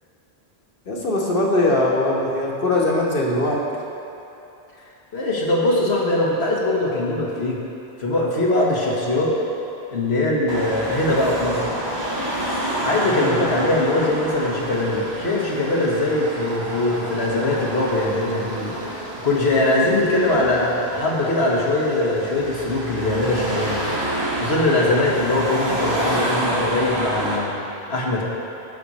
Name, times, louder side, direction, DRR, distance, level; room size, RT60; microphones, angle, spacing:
voice 1, 0.8-3.6 13.1-13.4, left 1 dB, 60° left, -2 dB, 1.6 m, -21 dB
voice 2, 5.1-7.6 8.0-9.3 9.9-11.6 12.8-18.8 19.2-23.8 24.4-27.5 27.9-28.2, left 2 dB, 90° left, -3 dB, 1.8 m, -21 dB
Car passing by / Traffic noise roadway noise / Engine, 10.5-27.4, right 1 dB, 85° right, 3.2 m, -28 dB
16.0 x 6.3 x 4.2 m, 2.9 s
omnidirectional pair, 1.0 m